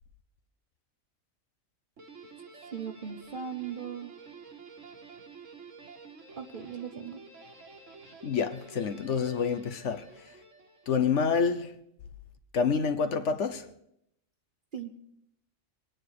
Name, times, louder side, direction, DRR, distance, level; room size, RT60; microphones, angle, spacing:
Guitar, 2.0-11.3, right 4 dB, 65° right, 1.9 m, -50 dB
voice 1, 2.7-4.2 6.4-7.2 14.7-14.9, right 7 dB, 45° right, 0.7 m, -38 dB
voice 2, 8.2-10.3 10.9-11.8 12.5-13.7, left 6 dB, 65° left, 1.2 m, -28 dB
23.5 x 9.4 x 4.8 m
omnidirectional pair, 1.4 m